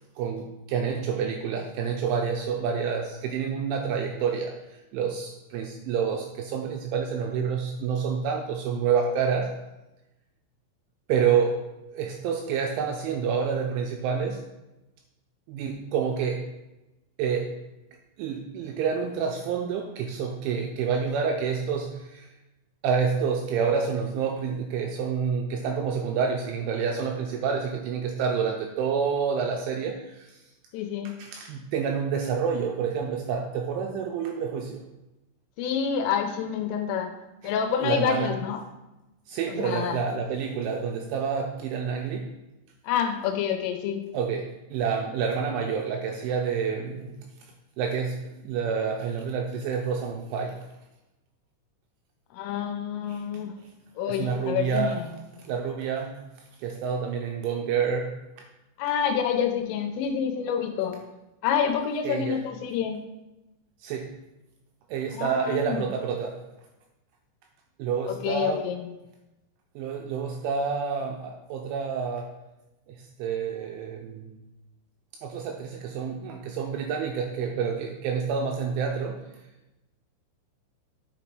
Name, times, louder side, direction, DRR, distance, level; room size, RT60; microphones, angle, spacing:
voice 1, 0.2-9.5 11.1-11.6 11.9-14.4 15.5-16.5 17.2-17.5 18.2-22.3 22.8-30.4 31.2-34.8 37.4-37.5 37.8-38.3 39.3-42.3 44.1-47.2 47.8-50.6 53.1-53.2 54.1-55.0 55.4-56.3 56.6-58.2 62.0-62.4 63.8-64.1 64.9-66.4 67.8-68.6 69.8-72.3 72.9-74.4 75.2-79.2, right 6 dB, 85° right, 3 dB, 2.8 m, -28 dB
voice 2, 30.7-31.2 35.6-37.2 37.4-38.6 39.5-40.0 42.8-44.1 52.3-53.5 54.0-55.2 58.8-61.0 61.4-63.0 65.1-65.9 68.1-68.9, left 8 dB, 80° left, 5 dB, 3.1 m, -28 dB
9.7 x 5.1 x 4.6 m, 0.99 s
omnidirectional pair, 6.0 m